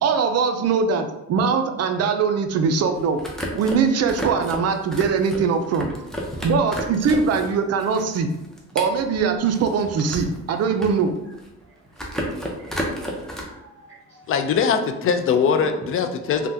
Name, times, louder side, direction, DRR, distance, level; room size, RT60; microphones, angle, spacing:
voice 1, 0.0-3.2 3.5-5.9 6.4-8.3 8.7-11.1, right 5 dB, 55° right, 7 dB, 0.5 m, -21 dB
sound 1, 2.9-7.5 7.8-10.4 10.7-11.6 11.9-13.4, equal, ahead, 0.6 m, -32 dB
voice 2, 6.3-6.8 8.9-9.0 10.1-10.2 11.2-11.3 11.6-14.4 15.9-16.5, right 1 dB, 40° right, -6 dB, 0.9 m, -48 dB
voice 3, 14.3-16.5, left 6 dB, 45° left, 6 dB, 0.4 m, -21 dB
3.4 x 2.2 x 2.7 m, 0.98 s
cardioid pair, 90°, 30 cm